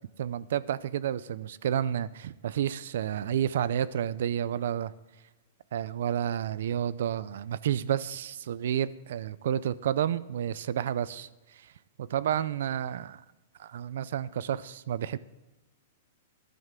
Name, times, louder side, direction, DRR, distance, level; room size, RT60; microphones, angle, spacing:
voice 1, 0.2-4.9 5.7-11.3 12.0-13.2 13.6-15.2, right 10 dB, 65° right, 18 dB, 0.5 m, -30 dB
14.0 x 11.0 x 3.7 m, 1.1 s
hypercardioid pair, 160°, 0 cm